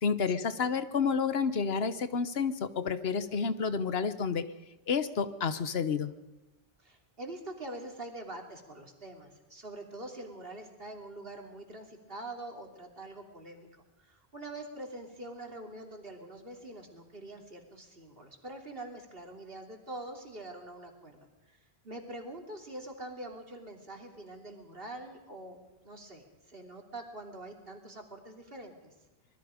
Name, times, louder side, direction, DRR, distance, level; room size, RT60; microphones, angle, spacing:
voice 1, 0.0-4.4 4.9-6.1, left 5 dB, 75° left, 13 dB, 1.2 m, -30 dB
voice 2, 6.8-28.9, right 1 dB, 65° right, 2 dB, 3.2 m, -45 dB
25.5 x 21.0 x 5.1 m, 1.1 s
omnidirectional pair, 1.0 m